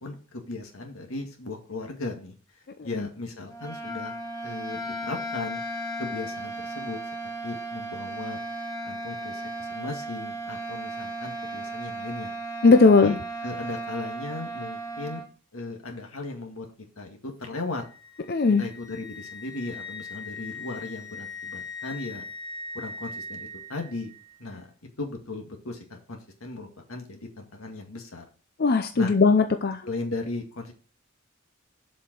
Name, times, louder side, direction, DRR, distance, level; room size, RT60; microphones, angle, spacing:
voice 1, 0.0-2.4 2.8-4.2 4.4-5.6 6.0-7.0 7.4-8.4 8.9-12.3 13.0-15.2 15.5-16.7 17.0-17.8 18.6-22.2 22.7-24.1 24.4-24.7 25.0-28.2 28.9-29.1 29.8-30.7, left 3 dB, 85° left, 3 dB, 2.0 m, -36 dB
sound 1, 3.5-15.3, right 1 dB, 20° left, 1.1 m, -35 dB
voice 2, 12.6-13.1 18.3-18.6 28.6-29.8, left 4 dB, 45° left, 7 dB, 0.6 m, -18 dB
Wind instrument woodwind instrument, 17.8-23.8, left 3 dB, ahead, 2.6 m, -40 dB
7.6 x 5.2 x 6.1 m, 0.38 s
head